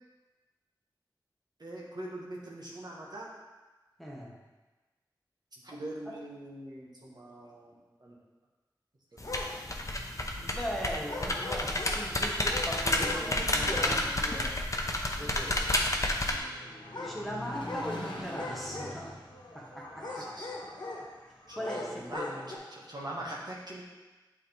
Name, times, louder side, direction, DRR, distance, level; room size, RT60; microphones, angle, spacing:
voice 1, 1.6-3.3 5.6-8.2 9.1-9.6 10.4-10.6 12.9-14.5 14.9-15.7 16.3-17.2 20.0-20.5 21.5-23.8, right 1 dB, 55° right, -4 dB, 1.3 m, -43 dB
voice 2, 4.0-4.4 6.1-6.2 10.4-14.1 15.2-15.6 16.9-19.2 19.5-20.3 21.5-22.5, equal, ahead, -4 dB, 1.5 m, -39 dB
sound 1, 9.2-9.5 11.1-12.0 12.5-13.3 13.6-14.0 14.2-14.3 16.9-17.2 17.6-17.9 18.3-19.2 19.9-21.1 21.6-22.6, left 3 dB, 60° left, 1.3 m, -40 dB
sound 2, 9.2-16.4, left 1 dB, 40° left, 0.8 m, -30 dB
Engine, 14.2-22.1, left 1 dB, 80° left, 1.0 m, -47 dB
8.5 x 3.7 x 3.5 m, 1.2 s
cardioid pair, 40°, 8 cm